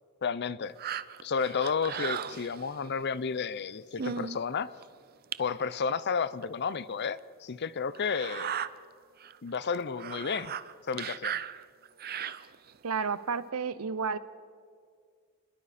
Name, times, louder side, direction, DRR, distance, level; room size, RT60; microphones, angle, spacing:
voice 1, 0.2-0.7 1.2-4.7 5.4-8.5 9.4-10.5 10.9-11.3, left 5 dB, 50° left, 0.6 m, -32 dB
sound 1, 0.8-2.9 3.5-3.6 4.0-4.4 4.8-4.9 5.3-5.4 6.4-6.5 7.0-7.1 7.9-8.7 9.2-9.4 9.6-12.7 13.3-13.4, right 8 dB, 45° right, 0.6 m, -36 dB
voice 2, 12.8-14.2, right 5 dB, 85° right, 0.8 m, -31 dB
28.5 x 21.5 x 4.2 m
head